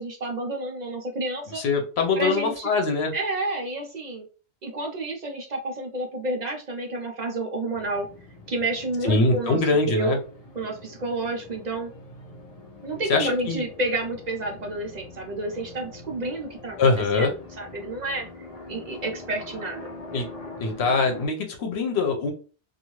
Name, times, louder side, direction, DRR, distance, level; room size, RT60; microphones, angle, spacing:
voice 1, 0.0-1.6 2.2-2.7 3.1-4.2 4.6-8.1 8.5-9.6 9.9-10.2 10.5-11.9 12.8-19.9, right 2 dB, 50° right, 3 dB, 0.6 m, -30 dB
voice 2, 1.5-3.1 9.0-10.2 13.1-13.6 16.8-17.3 20.1-20.2 20.6-22.3, left 3 dB, 80° left, 3 dB, 1.0 m, -23 dB
sound 1, 7.7-21.3, left 2 dB, 40° left, 0.7 m, -43 dB
2.6 x 2.4 x 3.0 m, 0.36 s
omnidirectional pair, 1.1 m